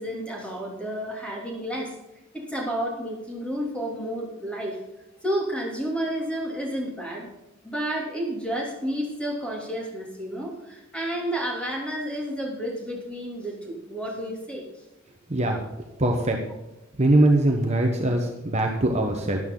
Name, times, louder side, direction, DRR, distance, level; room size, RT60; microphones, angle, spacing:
voice 1, 0.0-2.0 2.3-4.8 5.2-7.3 7.6-14.6, equal, 5° left, -2 dB, 2.9 m, -31 dB
voice 2, 16.0-16.4 17.0-19.4, right 1 dB, 35° right, 2 dB, 1.1 m, -21 dB
12.5 x 11.0 x 3.9 m, 0.96 s
head